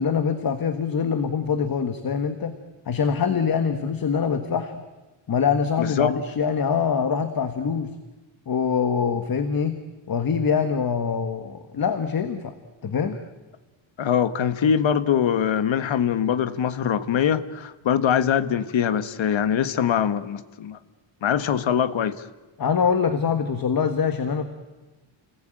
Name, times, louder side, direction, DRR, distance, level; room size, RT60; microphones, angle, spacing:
voice 1, 0.0-2.5 2.8-4.8 5.3-7.9 8.5-12.5 12.8-13.2 22.6-24.5, left 6 dB, 45° left, 9 dB, 1.6 m, -24 dB
voice 2, 5.8-6.2 14.0-20.8 21.2-22.2, left 8 dB, 70° left, 12 dB, 1.5 m, -23 dB
30.0 x 20.0 x 9.1 m, 1.2 s
wide cardioid pair, 150°, 48 cm